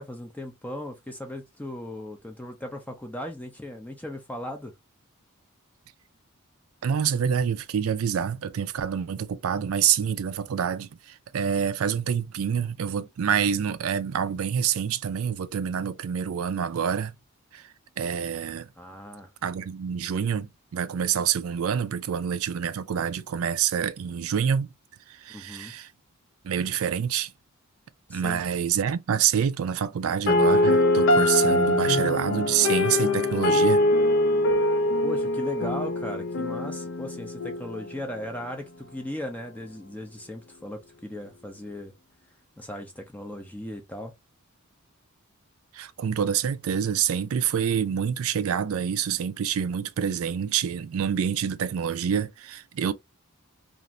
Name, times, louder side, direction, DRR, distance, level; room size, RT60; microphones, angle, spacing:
voice 1, 0.0-4.7 18.8-19.3 25.3-25.7 28.1-28.4 35.0-41.9 42.6-44.1, left 1 dB, 5° left, 0.5 m, -37 dB
voice 2, 6.8-17.1 17.5-17.7 18.0-18.7 19.4-24.7 25.1-25.9 26.4-27.3 28.1-33.8 45.7-52.9, right 8 dB, 70° right, 0.4 m, -27 dB
sound 1, 30.3-38.3, left 1 dB, 60° left, 0.5 m, -23 dB
2.5 x 2.5 x 3.0 m
head